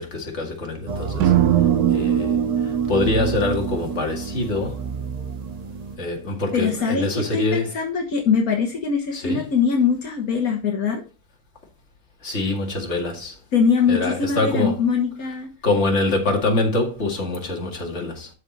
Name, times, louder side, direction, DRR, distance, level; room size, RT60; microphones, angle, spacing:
voice 1, 0.0-1.3 1.9-4.9 6.0-7.7 9.1-9.4 12.2-13.4 13.9-14.8 15.6-18.3, left 2 dB, 50° left, 2.3 m, -24 dB
sound 1, 0.9-6.0, right 5 dB, 45° right, 0.5 m, -32 dB
sound 2, 1.2-5.4, right 10 dB, 90° right, 1.1 m, -22 dB
voice 2, 6.5-11.0 13.5-15.5, left 6 dB, 75° left, 1.8 m, -22 dB
12.5 x 5.0 x 4.2 m
omnidirectional pair, 1.5 m